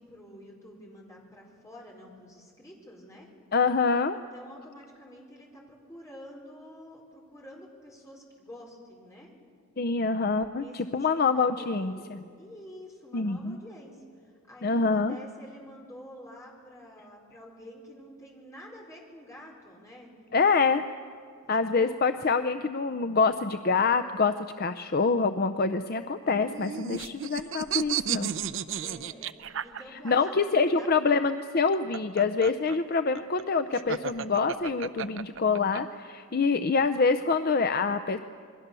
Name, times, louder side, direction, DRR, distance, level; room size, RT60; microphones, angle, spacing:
voice 1, 0.0-3.3 4.3-9.3 10.5-20.1 21.5-22.3 28.7-30.9, equal, 15° left, -2 dB, 4.5 m, -48 dB
voice 2, 3.5-4.2 9.8-12.0 13.1-13.6 14.6-15.2 20.3-20.8 21.5-28.3 29.9-38.2, left 4 dB, 45° left, 9 dB, 0.6 m, -26 dB
sound 1, 26.3-30.3 31.6-35.8, right 8 dB, 60° right, 0.6 m, -33 dB
28.0 x 21.5 x 6.9 m, 2.1 s
head